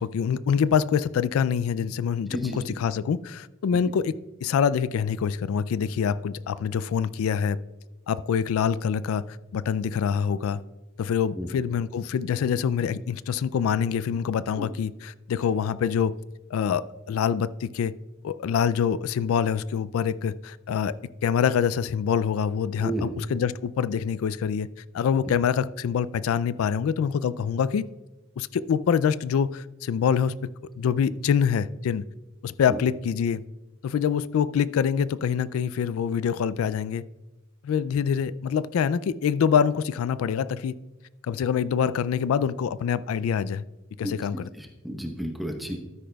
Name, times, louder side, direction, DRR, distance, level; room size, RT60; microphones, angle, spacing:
voice 1, 0.0-4.1 4.4-7.6 8.1-10.6 11.0-16.1 16.5-17.9 18.2-21.0 21.2-24.7 24.9-27.9 28.4-30.3 30.8-32.0 32.4-33.4 33.8-37.0 37.6-40.7 41.2-43.6 44.0-44.5, left 7 dB, 80° left, 0.3 m, -25 dB
voice 2, 44.6-45.8, right 1 dB, ahead, 0.8 m, -32 dB
12.5 x 10.0 x 2.3 m
head